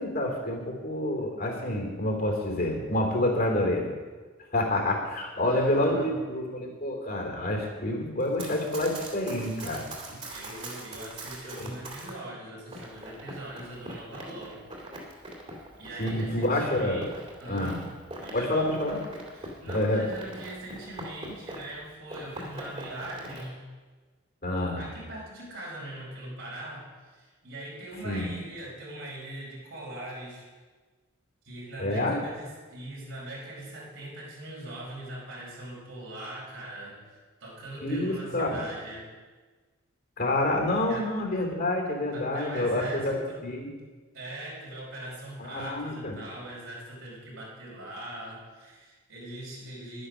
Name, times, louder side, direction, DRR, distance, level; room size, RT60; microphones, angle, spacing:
voice 1, 0.0-3.8 4.5-10.2 11.6-11.7 16.0-17.0 17.5-17.8 18.3-19.0 19.7-20.1 24.4-24.8 28.0-28.3 31.8-32.2 37.8-38.6 40.2-43.7 45.4-46.2, left 1 dB, 50° left, 1 dB, 3.2 m, -28 dB
voice 2, 5.5-6.2 10.3-14.6 15.8-17.1 17.4-17.8 18.2-18.7 19.3-23.6 24.7-30.5 31.4-39.1 40.9-41.1 42.1-43.4 44.1-50.1, right 1 dB, 70° right, -5 dB, 5.0 m, -41 dB
Run, 8.2-12.2 12.7-21.8 22.1-23.5, right 1 dB, 30° right, 2.7 m, -42 dB
11.0 x 10.0 x 6.3 m, 1.4 s
head